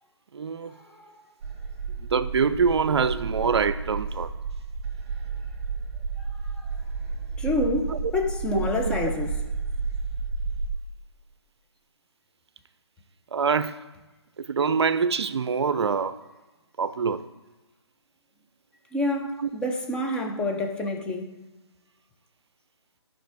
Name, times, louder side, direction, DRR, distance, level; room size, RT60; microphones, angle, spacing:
voice 1, 0.3-0.7 2.0-4.3 7.9-8.1 8.8-9.0 13.3-13.8 14.4-16.2 16.8-17.2 19.4-19.5, right 5 dB, 70° right, 0.5 m, -25 dB
sound 1, 1.4-10.7, right 4 dB, 25° right, 2.3 m, -32 dB
voice 2, 7.4-9.4 18.9-21.3, left 1 dB, 5° left, 0.7 m, -28 dB
13.5 x 5.4 x 3.5 m
hypercardioid pair, 150°, 15 cm